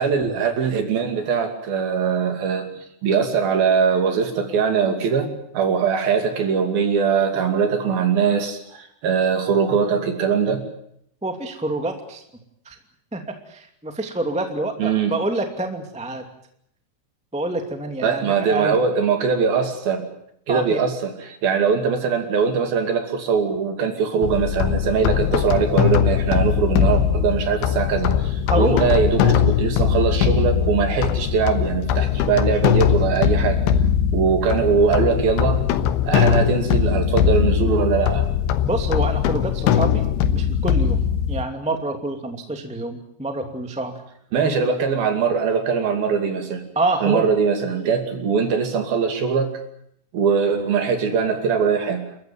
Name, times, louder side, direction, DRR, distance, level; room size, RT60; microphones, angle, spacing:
voice 1, 0.0-10.6 14.8-15.2 18.0-20.1 20.5-33.6 34.1-35.6 36.1-38.3 44.3-46.6 47.0-49.5 50.1-52.0, right 6 dB, 55° right, 6 dB, 4.2 m, -21 dB
voice 2, 11.2-12.2 12.6-12.7 13.1-13.2 13.5-16.2 17.3-18.8 20.5-20.8 28.5-28.9 38.6-40.0 40.3-43.9 46.7-47.2, right 2 dB, 5° right, 5 dB, 1.0 m, -27 dB
sound 1, 24.2-41.4, left 8 dB, 85° left, 3.5 m, -20 dB
29.5 x 14.5 x 9.3 m, 0.71 s
omnidirectional pair, 5.3 m